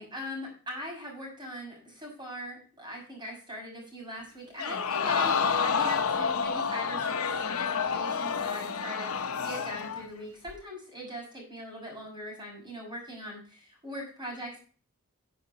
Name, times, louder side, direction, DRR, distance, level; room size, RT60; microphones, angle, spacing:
voice 1, 0.0-14.6, equal, 20° right, -1 dB, 6.1 m, -41 dB
Crowd, 4.6-10.1 10.5-10.6, left 6 dB, 80° left, 1.0 m, -29 dB
15.0 x 6.8 x 2.8 m, 0.40 s
head